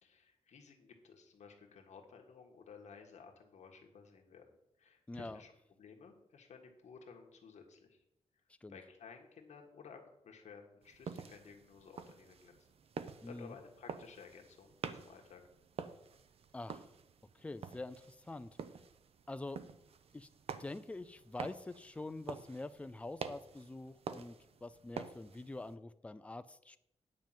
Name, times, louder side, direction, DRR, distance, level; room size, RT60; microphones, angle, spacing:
voice 1, 0.0-4.5 4.8-5.5 5.8-8.0 8.7-12.7 13.0-15.4, left 5 dB, 80° left, 2 dB, 1.7 m, -55 dB
voice 2, 5.1-5.4 8.6-8.8 13.2-13.6 16.5-16.9 17.3-18.5 19.3-19.6 20.1-20.3 20.6-26.8, left 2 dB, 10° left, 11 dB, 0.4 m, -45 dB
sound 1, 10.8-25.7, right 6 dB, 60° right, 0.6 m, -48 dB
9.6 x 5.2 x 7.5 m, 0.80 s
wide cardioid pair, 180°, 12 cm